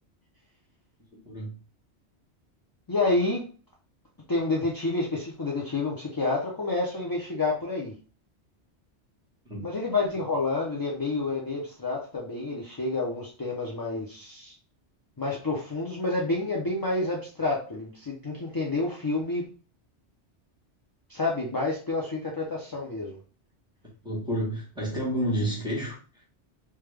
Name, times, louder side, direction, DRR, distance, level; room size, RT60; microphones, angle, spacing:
voice 1, 1.1-1.5 9.5-9.7 24.0-26.2, equal, 5° right, -4 dB, 1.1 m, -30 dB
voice 2, 2.9-3.4 4.3-7.9 9.6-14.5 15.2-19.5 21.1-23.2, left 3 dB, 30° left, -3 dB, 0.4 m, -29 dB
3.4 x 2.2 x 3.3 m, 0.37 s
omnidirectional pair, 1.2 m